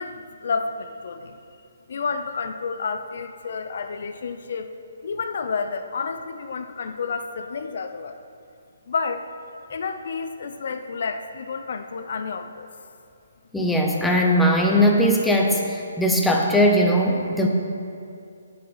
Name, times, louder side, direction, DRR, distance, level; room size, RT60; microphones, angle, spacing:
voice 1, 0.0-1.4 1.9-4.7 5.0-8.2 8.9-9.3 9.7-12.7, left 5 dB, 55° left, 8 dB, 0.5 m, -30 dB
voice 2, 13.5-17.5, equal, 5° left, 0 dB, 0.7 m, -19 dB
9.5 x 7.3 x 4.1 m, 2.4 s
hypercardioid pair, 160°, 0 cm